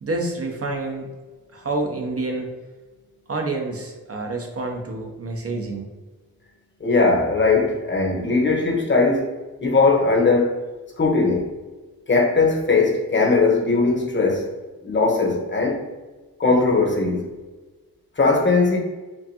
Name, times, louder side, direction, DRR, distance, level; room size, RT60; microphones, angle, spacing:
voice 1, 0.0-1.1 1.5-2.5 3.3-5.9, right 2 dB, 40° right, 2 dB, 0.7 m, -28 dB
voice 2, 6.8-9.3 9.6-10.6 11.0-11.5 12.1-14.5 14.8-15.8 16.4-17.2 18.2-18.8, left 3 dB, 30° left, 0 dB, 1.0 m, -19 dB
4.5 x 2.5 x 2.8 m, 1.2 s
cardioid pair, 75°, 36 cm